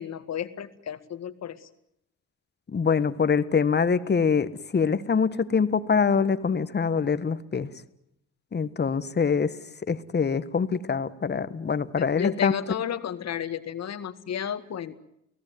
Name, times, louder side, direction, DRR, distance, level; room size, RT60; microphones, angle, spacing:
voice 1, 0.0-1.7 12.0-14.9, left 8 dB, 60° left, 11 dB, 2.0 m, -32 dB
voice 2, 2.7-7.7 8.5-9.5 9.9-12.5, left 6 dB, 35° left, 13 dB, 1.6 m, -24 dB
30.0 x 17.0 x 9.5 m, 0.79 s
cardioid pair, 90°, 30 cm